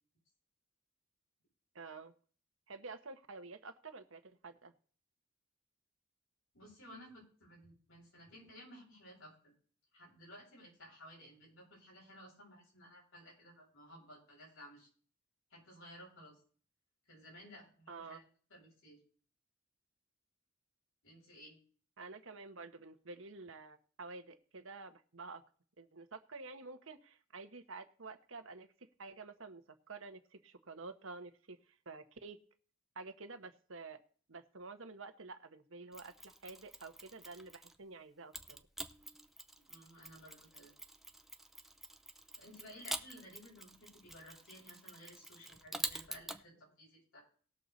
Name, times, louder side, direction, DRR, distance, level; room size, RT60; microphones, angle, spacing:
voice 1, 1.7-2.1 2.7-4.7 17.9-18.2 22.0-25.4 25.8-29.6 29.9-31.6 31.8-32.4 32.9-34.0 34.3-38.6, right 3 dB, 80° right, 9 dB, 1.2 m, -50 dB
voice 2, 6.5-9.3 9.9-14.9 15.5-16.4 17.1-18.2 18.5-19.0 21.0-21.6 39.6-40.7 42.4-47.2, equal, 85° left, -4 dB, 7.5 m, -56 dB
Mechanisms, 35.9-37.8 38.3-46.4, right 1 dB, ahead, 0.7 m, -47 dB
18.5 x 6.7 x 4.1 m, 0.43 s
head